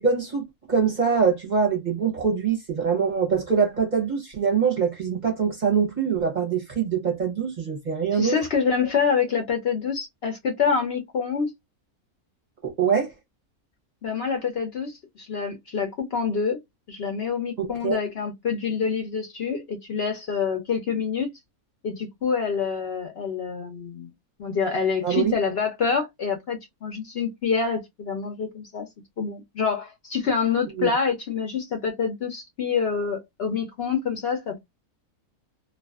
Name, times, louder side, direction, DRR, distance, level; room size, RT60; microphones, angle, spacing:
voice 1, 0.0-8.4 12.6-13.1 17.6-18.0 25.0-25.3 30.8-30.9, right 6 dB, 40° right, 0.7 m, -24 dB
voice 2, 8.1-11.5 14.0-16.6 16.9-21.3 21.8-24.1 24.4-28.9 29.2-34.6, left 6 dB, 65° left, 0.6 m, -26 dB
2.4 x 2.3 x 2.3 m
omnidirectional pair, 1.6 m